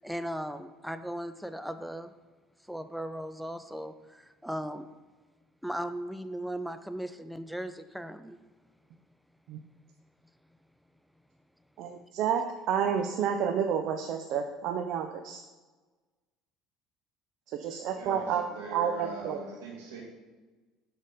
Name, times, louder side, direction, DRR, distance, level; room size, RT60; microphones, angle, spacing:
voice 1, 0.0-2.1 2.7-4.9 5.6-8.4, equal, ahead, 10 dB, 0.4 m, -37 dB
voice 2, 11.8-15.4 17.5-18.4 18.7-19.4, right 8 dB, 65° right, 6 dB, 0.4 m, -30 dB
voice 3, 17.7-20.0, right 3 dB, 90° right, -3 dB, 1.9 m, -42 dB
6.3 x 4.0 x 5.0 m, 1.3 s
supercardioid pair, 85°, 0 cm